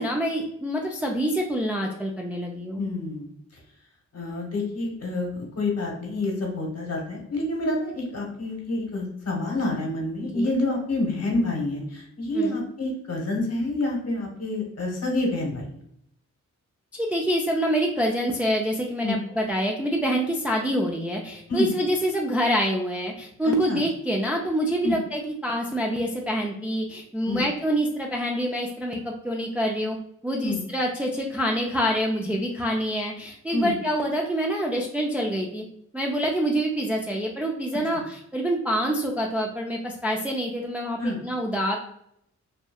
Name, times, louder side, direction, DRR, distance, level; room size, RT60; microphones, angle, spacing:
voice 1, 0.0-2.8 10.3-10.6 12.3-12.6 16.9-30.0 30.2-35.6 35.9-41.8, equal, 5° right, -1 dB, 0.3 m, -26 dB
voice 2, 2.8-3.3 4.1-15.7 19.0-19.2 21.5-21.7 23.4-23.8 24.8-25.0 27.3-27.4 30.4-30.6 33.5-33.7 41.0-41.2, left 2 dB, 50° left, 0 dB, 1.1 m, -28 dB
2.7 x 2.2 x 2.3 m, 0.74 s
cardioid pair, 55°, 31 cm